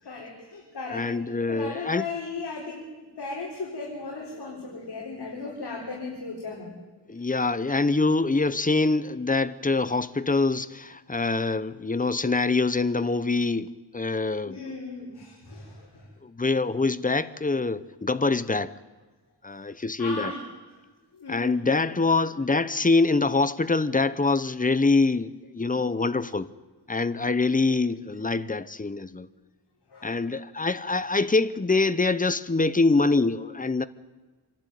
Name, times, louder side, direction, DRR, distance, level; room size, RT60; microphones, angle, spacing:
voice 1, 0.0-1.1 1.5-6.7 7.2-7.3 14.4-16.1 20.0-20.4 21.1-21.9 29.9-30.3, left 3 dB, 60° left, 4.1 m, -37 dB
voice 2, 0.9-2.0 7.1-14.6 16.2-18.7 19.4-20.3 21.3-26.5 26.9-29.3 30.0-33.8, left 3 dB, 20° left, 0.7 m, -24 dB
26.0 x 12.0 x 9.2 m
wide cardioid pair, 105°, 43 cm